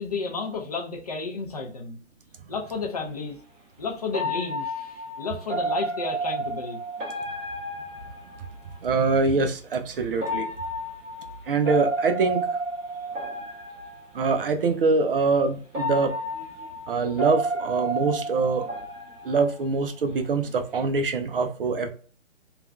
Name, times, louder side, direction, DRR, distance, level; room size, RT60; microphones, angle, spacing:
voice 1, 0.0-2.0 2.5-3.4 3.8-6.8, left 4 dB, 35° left, 0.4 m, -32 dB
sound 1, 2.6-2.8 4.1-8.9 10.1-14.4 15.2-15.3 15.7-20.1 20.5-20.8, right 1 dB, 20° right, 1.0 m, -32 dB
voice 2, 8.8-10.5 11.5-12.5 14.1-16.1 16.9-18.7 19.2-21.9, right 4 dB, 50° right, 0.5 m, -24 dB
3.2 x 2.3 x 2.3 m
hypercardioid pair, 145°, 37 cm